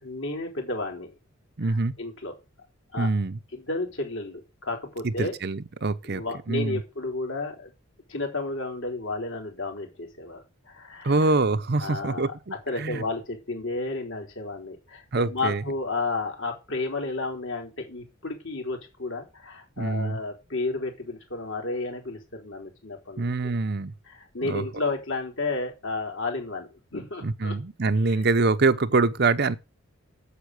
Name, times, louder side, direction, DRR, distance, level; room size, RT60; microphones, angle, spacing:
voice 1, 0.0-1.1 1.6-2.4 2.9-3.1 3.5-5.3 6.1-7.7 8.1-11.1 11.8-12.3 12.7-23.5 24.1-27.6, left 3 dB, 65° left, 3.7 m, -32 dB
voice 2, 1.6-1.9 3.0-3.4 5.0-6.8 11.0-13.0 15.1-15.6 19.8-20.2 23.2-23.9 24.4-24.6 27.2-29.6, right 3 dB, 50° right, 0.7 m, -25 dB
8.3 x 7.5 x 7.9 m
head